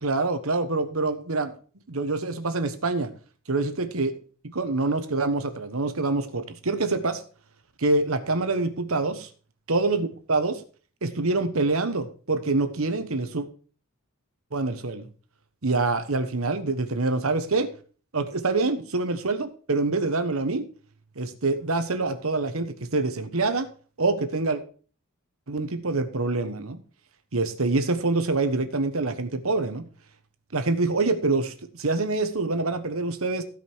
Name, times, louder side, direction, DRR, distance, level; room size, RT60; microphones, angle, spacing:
voice 1, 0.0-1.5 1.9-3.1 3.5-4.1 4.4-7.2 7.8-9.3 9.7-10.6 11.0-13.5 14.5-15.1 15.6-17.7 18.1-20.7 21.2-23.7 24.0-24.6 25.5-26.8 27.3-29.9 30.5-33.4, right 3 dB, 75° right, 9 dB, 1.2 m, -26 dB
15.5 x 5.3 x 4.6 m, 0.40 s
head